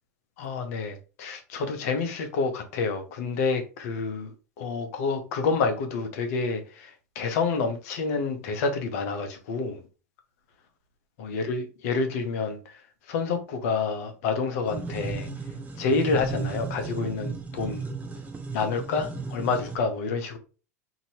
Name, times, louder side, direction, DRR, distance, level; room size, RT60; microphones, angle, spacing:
voice 1, 0.4-9.8 11.2-12.8 13.1-15.3 15.8-17.8 18.5-20.4, left 4 dB, 60° left, 0.8 m, -28 dB
sound 1, 14.7-19.8, right 4 dB, 15° right, 0.6 m, -35 dB
2.8 x 2.7 x 2.8 m
hypercardioid pair, 95°, 9 cm